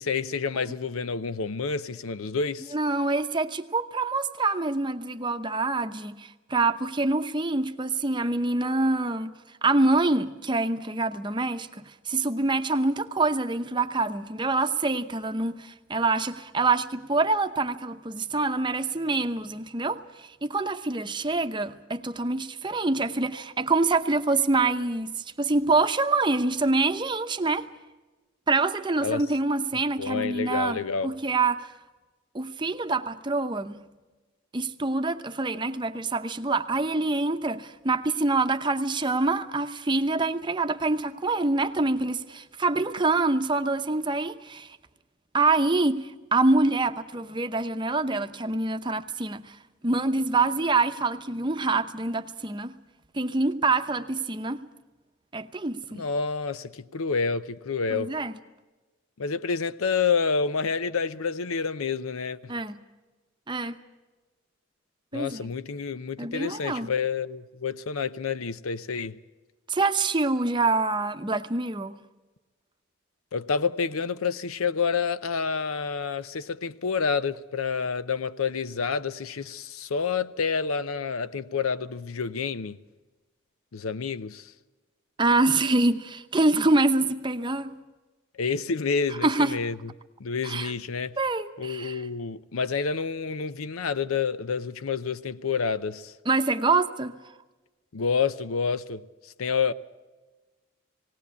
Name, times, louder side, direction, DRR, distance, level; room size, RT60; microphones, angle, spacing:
voice 1, 0.0-2.7 29.0-29.2 30.0-31.1 55.9-58.1 59.2-62.5 65.1-69.2 73.3-82.8 83.7-84.5 88.4-89.9 90.2-91.2 91.6-96.1 97.9-99.7, left 5 dB, 90° left, 0.6 m, -28 dB
voice 2, 2.7-27.7 28.5-31.7 32.3-33.8 34.5-44.8 45.3-49.6 49.8-52.8 53.1-54.6 55.3-56.1 57.9-58.3 62.5-62.8 63.5-63.7 65.1-65.5 66.2-66.9 69.7-72.0 85.2-87.7 89.2-89.5 90.4-90.7 91.2-92.0 96.3-97.2, right 3 dB, 20° right, 0.8 m, -26 dB
19.0 x 18.0 x 8.3 m
head